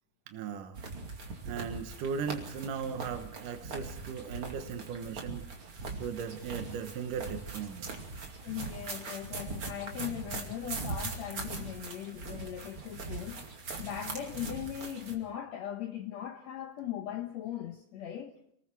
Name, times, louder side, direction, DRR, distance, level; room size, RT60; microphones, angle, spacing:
voice 1, 0.3-0.8 1.5-5.4 6.0-7.9, right 6 dB, 70° right, 2.8 m, -37 dB
sound 1, 0.7-15.2, right 3 dB, 40° right, 3.2 m, -41 dB
voice 2, 8.4-13.5 13.8-18.3, left 11 dB, 65° left, 1.9 m, -39 dB
28.5 x 20.0 x 4.7 m
omnidirectional pair, 4.0 m